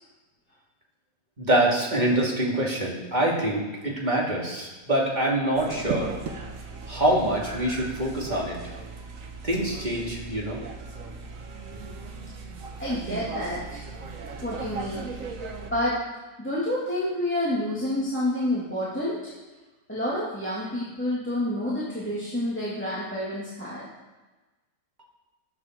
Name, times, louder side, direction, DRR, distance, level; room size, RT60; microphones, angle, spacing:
voice 1, 1.4-6.1 6.9-8.8 9.4-10.6, right 1 dB, 25° right, -3 dB, 2.6 m, -25 dB
sound 1, 5.5-15.7, right 4 dB, 55° right, 1.4 m, -37 dB
voice 2, 12.8-13.8 14.4-15.2 15.7-16.0 16.4-19.3 19.9-23.9, left 1 dB, 5° left, -8 dB, 2.5 m, -29 dB
13.5 x 9.5 x 4.6 m, 1.2 s
omnidirectional pair, 1.8 m